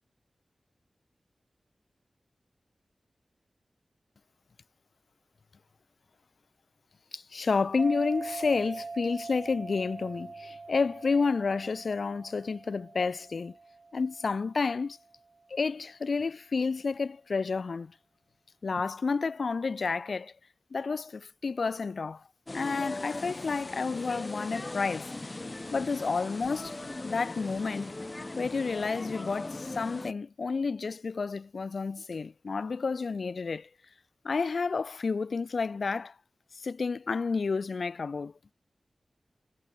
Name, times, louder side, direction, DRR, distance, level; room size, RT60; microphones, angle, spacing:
voice 1, 7.1-13.5 13.9-15.0 15.5-17.9 18.6-20.3 20.7-22.2 22.5-25.1 25.7-26.8 27.0-28.0 28.4-33.7 34.2-36.1 36.6-38.3, left 4 dB, 65° left, 1.7 m, -30 dB
sound 1, 7.8-14.8, right 3 dB, 50° right, 1.9 m, -42 dB
sound 2, 22.5-30.1, left 2 dB, 30° left, 4.6 m, -39 dB
wide cardioid pair, 110°, 0 cm